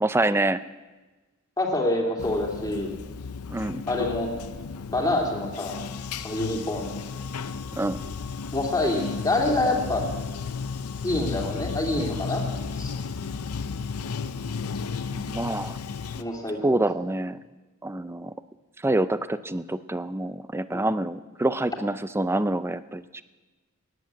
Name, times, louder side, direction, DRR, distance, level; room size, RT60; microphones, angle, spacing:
voice 1, 0.0-0.6 3.5-3.8 7.8-8.0 15.1-15.8 16.6-17.4 17.8-18.3 18.8-23.2, right 2 dB, 10° right, 14 dB, 0.4 m, -26 dB
voice 2, 1.6-2.9 3.9-4.3 4.9-5.9 6.2-7.0 8.5-10.0 11.0-12.4 12.8-12.9 16.2-16.8 20.7-20.9, left 2 dB, 15° left, 0 dB, 2.5 m, -26 dB
Bathtub (filling or washing), 2.2-16.2, left 5 dB, 85° left, 0.6 m, -34 dB
15.0 x 10.5 x 8.7 m, 1.2 s
head